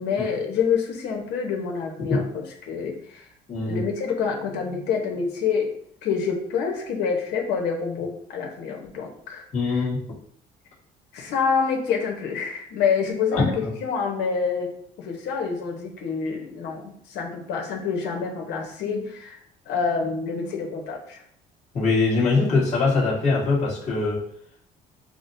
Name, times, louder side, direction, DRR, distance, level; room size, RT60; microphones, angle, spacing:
voice 1, 0.0-2.2 2.7-3.3 3.6-5.7 6.0-9.8 11.1-19.4 19.7-21.2, left 6 dB, 80° left, 1 dB, 1.0 m, -27 dB
voice 2, 3.5-3.8 9.5-10.0 13.3-13.7 21.7-24.2, left 3 dB, 45° left, -5 dB, 1.6 m, -22 dB
5.9 x 2.2 x 2.7 m, 0.66 s
cardioid pair, 110°, 17 cm